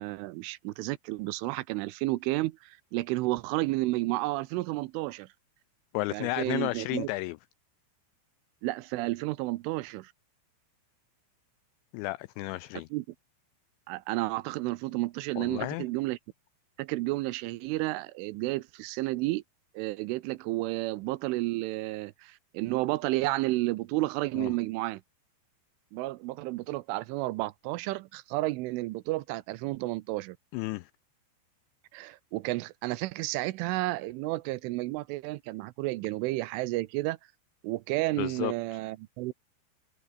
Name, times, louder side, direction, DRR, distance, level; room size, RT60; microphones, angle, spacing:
voice 1, 0.0-5.3 6.1-7.1 8.6-10.1 12.9-13.1 13.9-16.2 16.8-19.4 19.7-25.0 25.9-30.4 31.9-37.2 37.6-39.3, right 19 dB, 80° right, 3.1 m, -31 dB
voice 2, 5.9-7.4 11.9-12.9 15.4-15.9 24.4-24.5 30.5-30.9 38.2-38.5, left 20 dB, 90° left, 2.6 m, -32 dB
omnidirectional pair, 5.8 m